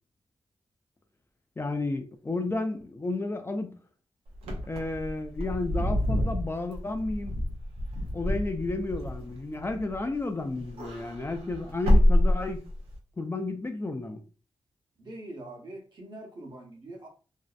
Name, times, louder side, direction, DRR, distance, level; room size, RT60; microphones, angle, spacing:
voice 1, 1.6-3.8 4.7-7.4 8.1-12.6 13.2-14.2, left 2 dB, 25° left, 0.4 m, -32 dB
Wind / Car, 4.4-10.2 10.5-13.0, left 1 dB, 90° right, 0.6 m, -27 dB
voice 2, 15.0-17.1, right 1 dB, 50° right, 0.9 m, -43 dB
2.6 x 2.0 x 2.4 m
cardioid pair, 50°, 10 cm